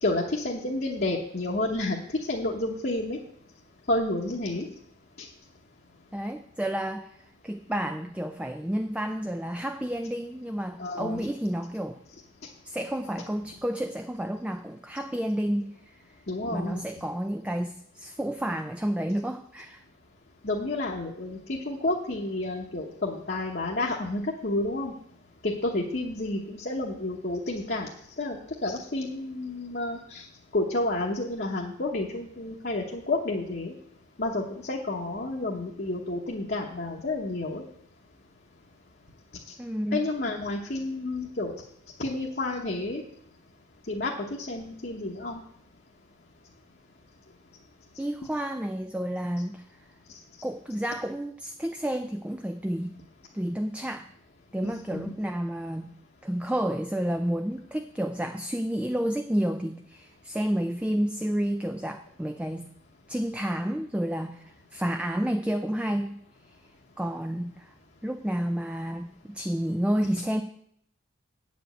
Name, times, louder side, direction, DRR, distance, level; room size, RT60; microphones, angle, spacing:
voice 1, 0.0-2.0 2.3-3.2 3.9-4.7 5.2-5.3 10.8-11.3 16.3-16.8 20.4-24.9 25.4-27.9 28.2-30.2 30.5-33.7 34.2-37.6 39.9-41.5 42.0-43.0 43.9-45.4 54.6-55.1, left 2 dB, 45° left, -1 dB, 1.0 m, -30 dB
voice 2, 6.1-12.0 12.6-16.0 16.5-19.8 39.6-40.0 48.0-49.7 50.4-53.0 53.3-54.1 54.5-55.9 56.2-62.7 63.1-66.2 66.5-66.6 67.0-67.7 68.0-70.4, equal, 5° right, 6 dB, 0.3 m, -30 dB
9.0 x 5.2 x 7.9 m, 0.69 s
head